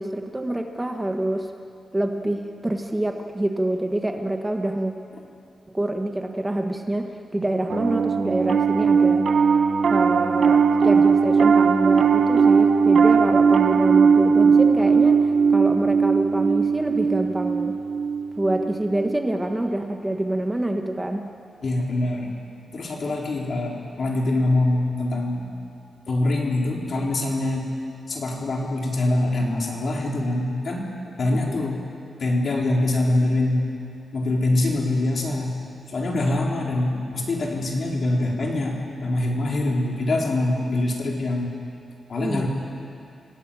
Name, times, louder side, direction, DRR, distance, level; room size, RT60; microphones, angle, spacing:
voice 1, 0.0-1.5 1.9-4.9 5.7-9.3 9.9-17.8 18.4-21.3 31.3-31.4 42.2-42.5, right 1 dB, 15° right, 4 dB, 1.4 m, -26 dB
Piano, 7.7-19.2, right 5 dB, 65° right, 1.1 m, -18 dB
voice 2, 21.6-22.3 22.7-25.5 26.1-27.7 28.1-30.9 31.2-31.8 32.2-33.6 34.1-35.5 35.9-41.5 42.1-42.5, left 2 dB, 50° left, -1 dB, 4.4 m, -24 dB
28.0 x 18.0 x 8.9 m, 2.5 s
wide cardioid pair, 115°, 0 cm